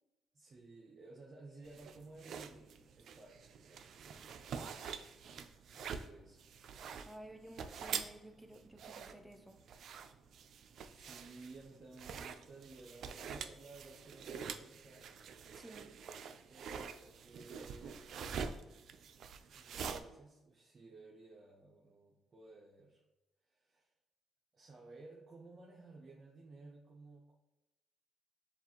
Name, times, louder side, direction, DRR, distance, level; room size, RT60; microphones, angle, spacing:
voice 1, 0.3-4.2 5.7-6.5 10.1-10.3 10.9-15.1 16.5-18.5 19.5-23.0 23.5-23.9 24.5-27.3, right 3 dB, 45° right, -2 dB, 0.8 m, -56 dB
sound 1, 1.7-20.0, right 6 dB, 65° right, 0.4 m, -46 dB
voice 2, 7.1-9.6 15.5-15.9, right 1 dB, 5° right, 7 dB, 0.5 m, -53 dB
7.1 x 2.5 x 2.8 m, 1.0 s
cardioid pair, 90°, 0 cm